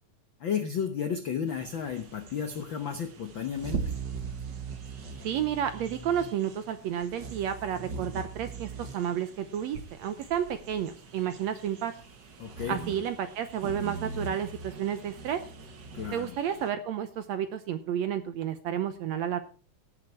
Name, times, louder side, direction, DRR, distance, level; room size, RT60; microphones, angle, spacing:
voice 1, 0.4-3.9 12.4-12.8 15.9-16.3, left 7 dB, 75° left, 7 dB, 1.1 m, -33 dB
sound 1, 1.5-16.7, right 4 dB, 45° right, 1.6 m, -41 dB
voice 2, 5.2-11.9 12.7-15.4 16.1-19.4, right 9 dB, 70° right, 11 dB, 1.7 m, -31 dB
16.0 x 7.5 x 4.6 m, 0.36 s
omnidirectional pair, 3.8 m